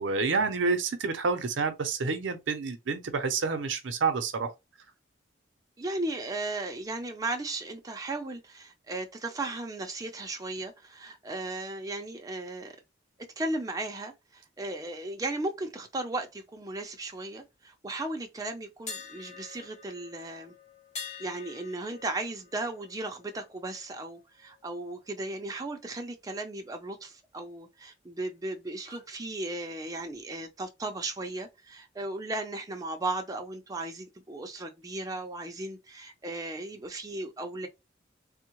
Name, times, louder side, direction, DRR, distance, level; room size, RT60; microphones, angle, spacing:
voice 1, 0.0-4.5, right 4 dB, 75° right, 0.6 m, -28 dB
voice 2, 5.8-12.8 13.4-20.5 21.2-37.7, right 2 dB, 20° right, 0.5 m, -36 dB
sound 1, 18.9-24.8 25.1-25.3 28.8-29.1, left 5 dB, 40° left, 1.0 m, -46 dB
3.5 x 2.1 x 3.0 m
head